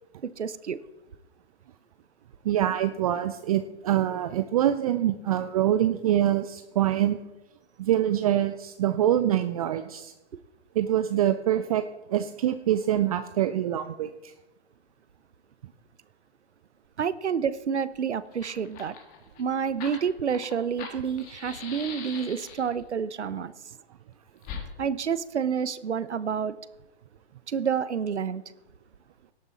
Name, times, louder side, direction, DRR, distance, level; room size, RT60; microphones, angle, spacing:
voice 1, 0.2-0.8 17.0-18.9 19.4-23.5 24.8-26.6 27.5-28.4, right 7 dB, 80° right, 16 dB, 0.8 m, -29 dB
voice 2, 2.4-7.2 7.8-10.1 10.7-11.8 12.1-14.3, right 11 dB, 35° right, 10 dB, 0.5 m, -25 dB
Fire, 17.9-18.0 18.3-22.8 24.4-24.7, left 6 dB, 25° left, 1.7 m, -41 dB
18.0 x 6.9 x 4.2 m, 0.98 s
hypercardioid pair, 130°, 34 cm